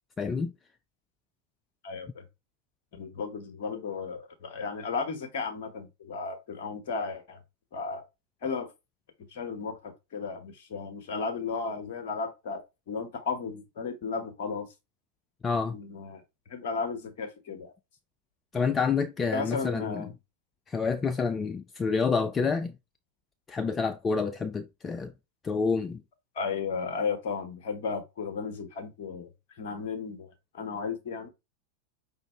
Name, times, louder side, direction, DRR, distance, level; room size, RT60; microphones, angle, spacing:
voice 1, 0.2-0.5 15.4-15.8 18.5-20.1 20.7-22.7 23.5-25.1 25.4-26.0, left 5 dB, 20° left, 0.3 m, -28 dB
voice 2, 1.8-2.2 3.0-7.4 7.7-8.0 8.4-8.7 9.3-14.7 15.7-16.2 16.5-17.7 19.3-20.1 26.3-29.3 29.6-31.3, left 5 dB, 50° left, 1.0 m, -34 dB
5.1 x 2.6 x 3.3 m
figure-of-eight pair, 90°, 0 cm